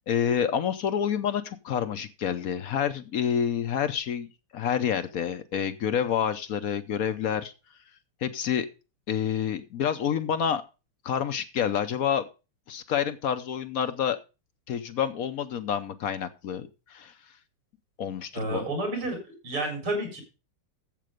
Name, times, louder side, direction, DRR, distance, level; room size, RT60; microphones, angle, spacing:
voice 1, 0.1-7.5 8.2-8.7 9.1-10.6 11.0-12.2 12.7-14.2 14.7-17.1 18.0-18.7, left 8 dB, 65° left, 11 dB, 0.8 m, -28 dB
voice 2, 18.3-19.2 19.4-20.2, right 1 dB, 70° right, 3 dB, 4.7 m, -30 dB
11.0 x 7.8 x 5.1 m, 0.31 s
omnidirectional pair, 2.3 m